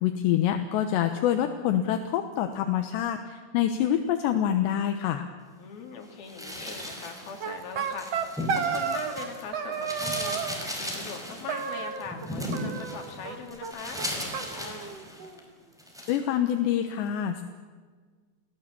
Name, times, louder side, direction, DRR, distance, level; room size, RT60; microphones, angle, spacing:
voice 1, 0.0-5.3 16.1-17.4, left 10 dB, 75° left, 6 dB, 3.1 m, -26 dB
voice 2, 5.6-15.0, left 6 dB, 55° left, 3 dB, 4.6 m, -41 dB
sound 1, 6.3-9.4 9.7-15.4 15.8-16.2, equal, ahead, 4.1 m, -36 dB
sound 2, 7.4-9.3 9.5-10.6 11.5-12.3 12.5-13.4 13.6-13.7 14.0-14.1 14.3-15.4, right 6 dB, 55° right, 1.9 m, -32 dB
29.5 x 18.5 x 8.5 m, 1.5 s
omnidirectional pair, 5.5 m